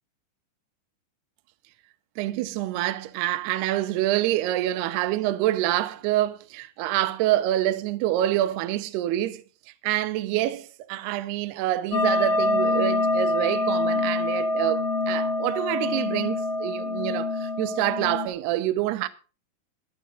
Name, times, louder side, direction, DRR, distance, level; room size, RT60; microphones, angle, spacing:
voice 1, 2.2-9.4 9.8-19.1, right 14 dB, 75° right, 2.5 m, -26 dB
sound 1, 11.9-18.3, left 2 dB, 90° left, 5.3 m, -25 dB
21.5 x 12.0 x 2.5 m
omnidirectional pair, 5.8 m